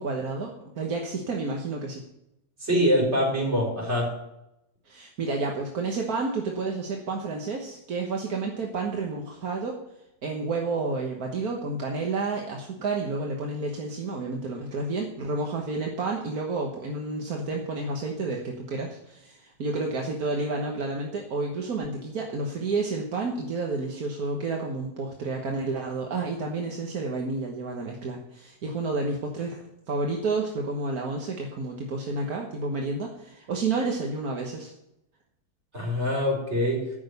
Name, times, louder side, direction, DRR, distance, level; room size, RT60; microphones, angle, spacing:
voice 1, 0.0-2.0 4.9-9.8 10.2-34.7, right 3 dB, 75° right, 1 dB, 1.8 m, -30 dB
voice 2, 2.6-4.1 35.7-36.8, equal, 45° right, -3 dB, 4.9 m, -24 dB
14.5 x 6.3 x 8.1 m, 0.85 s
omnidirectional pair, 1.6 m